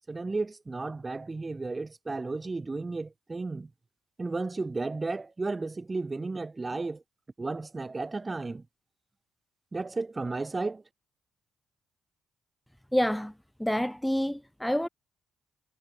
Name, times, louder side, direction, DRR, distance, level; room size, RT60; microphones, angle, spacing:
voice 1, 0.1-3.7 4.2-7.0 7.4-8.7 9.7-10.8, right 3 dB, 25° right, 3.6 m, -33 dB
voice 2, 12.9-13.3 13.6-14.9, equal, 5° left, 0.9 m, -27 dB
cardioid pair, 90°, 0 cm